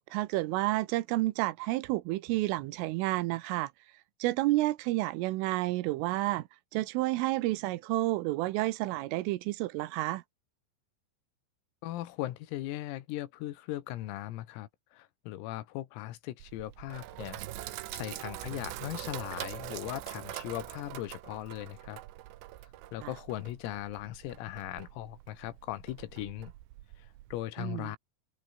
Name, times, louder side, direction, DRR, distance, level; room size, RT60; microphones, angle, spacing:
voice 1, 0.1-3.7 4.2-10.2 23.0-23.1 27.6-27.9, right 18 dB, 85° right, 3.4 m, -30 dB
voice 2, 11.8-22.0 22.9-26.5 27.0-28.0, left 15 dB, 90° left, 4.3 m, -39 dB
Sink (filling or washing), 16.4-27.4, right 16 dB, 70° right, 3.0 m, -44 dB
omnidirectional pair, 5.9 m